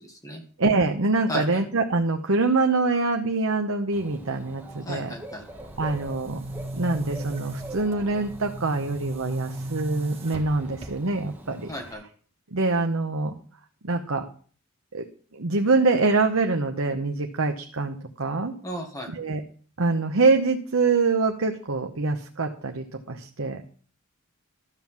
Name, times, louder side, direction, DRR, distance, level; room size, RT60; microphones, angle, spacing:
voice 1, 0.0-0.4 1.3-1.6 4.9-5.5 11.7-12.0 18.6-19.1, equal, 15° left, 2 dB, 1.8 m, -35 dB
voice 2, 0.6-5.1 5.8-6.4 6.7-11.7 12.5-13.4 13.8-14.2 14.9-15.0 15.3-18.5 19.1-19.4 19.8-23.6, right 3 dB, 70° right, 4 dB, 1.0 m, -24 dB
Dog / Bird, 3.9-11.9, right 1 dB, 10° right, 1.8 m, -44 dB
Boom, 5.5-11.3, right 1 dB, 30° right, 1.8 m, -36 dB
13.0 x 6.0 x 7.3 m, 0.43 s
head